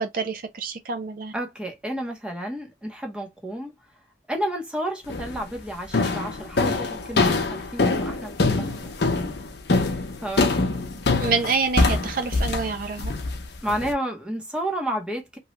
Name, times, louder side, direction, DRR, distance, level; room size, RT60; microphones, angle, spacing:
voice 1, 0.0-1.3 11.2-13.1, right 4 dB, 50° right, 0.4 m, -27 dB
voice 2, 1.3-3.7 4.3-8.9 10.2-10.6 13.6-15.4, right 1 dB, 5° right, 0.7 m, -31 dB
sound 1, 5.1-5.4 5.9-13.9, left 3 dB, 60° left, 0.6 m, -24 dB
3.0 x 2.2 x 2.9 m
head